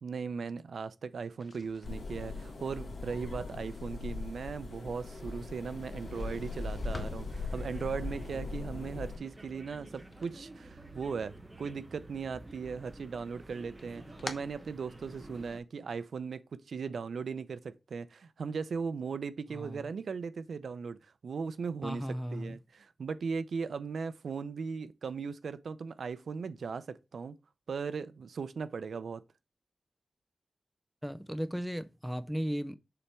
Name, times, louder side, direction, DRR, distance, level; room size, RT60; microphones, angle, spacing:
voice 1, 0.0-22.0 22.3-27.4 27.7-29.2, right 5 dB, 90° right, 0.5 m, -38 dB
sound 1, 1.3-11.3 11.6-12.5 12.8-15.5, left 3 dB, 40° left, 0.9 m, -51 dB
sound 2, 1.8-9.2, left 3 dB, 80° left, 1.8 m, -40 dB
sound 3, 4.8-15.6, right 2 dB, 25° right, 1.1 m, -51 dB
voice 2, 19.5-19.9 21.8-22.6 31.0-32.8, equal, ahead, 0.5 m, -36 dB
6.9 x 3.4 x 4.4 m
wide cardioid pair, 135°, 0 cm